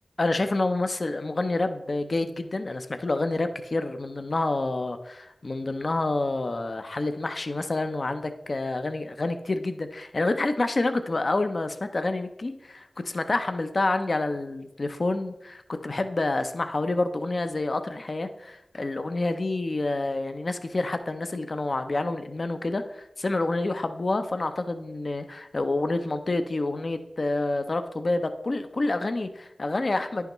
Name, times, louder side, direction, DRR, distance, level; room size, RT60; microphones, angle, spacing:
voice 1, 0.2-30.3, left 2 dB, 55° left, 8 dB, 0.5 m, -28 dB
10.5 x 5.6 x 3.0 m, 0.88 s
wide cardioid pair, 75°, 0 cm